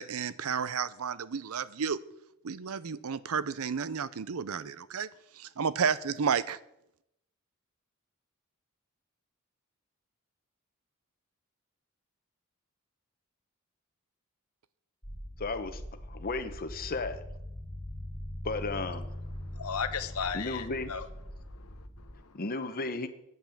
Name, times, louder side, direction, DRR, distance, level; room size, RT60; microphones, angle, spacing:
voice 1, 0.0-2.0 2.4-5.1 5.4-6.6, right 6 dB, 80° right, 0.6 m, -31 dB
sound 1, 15.0-22.1, equal, ahead, 4.5 m, -44 dB
voice 2, 15.4-15.8 16.1-17.2 18.4-19.1 20.3-20.9 22.3-23.1, left 3 dB, 45° left, 1.0 m, -34 dB
sound 2, 16.5-21.2, left 1 dB, 65° left, 1.6 m, -44 dB
voice 3, 19.4-21.1 21.3-22.4, left 6 dB, 85° left, 1.1 m, -37 dB
9.4 x 8.0 x 7.2 m
head